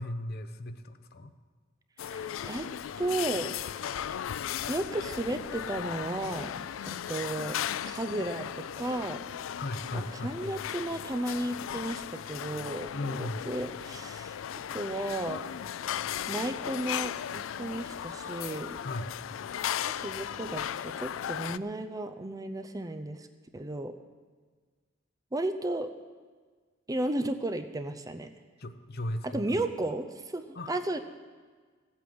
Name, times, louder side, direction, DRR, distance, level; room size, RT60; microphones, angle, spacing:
voice 1, 0.0-1.3 9.6-10.6 12.9-13.5 18.8-19.1 28.6-29.6 30.5-30.7, left 1 dB, 55° left, 9 dB, 0.8 m, -36 dB
sound 1, 2.0-21.6, left 9 dB, 75° left, 0.3 m, -36 dB
voice 2, 2.0-2.7 3.0-3.5 4.7-6.5 7.1-7.6 7.8-9.2 9.9-14.4 14.7-15.4 16.3-18.8 19.8-23.3 23.5-23.9 25.3-25.9 26.9-28.3 29.2-31.0, right 1 dB, 20° right, 8 dB, 0.5 m, -34 dB
15.0 x 8.5 x 7.7 m, 1.5 s
head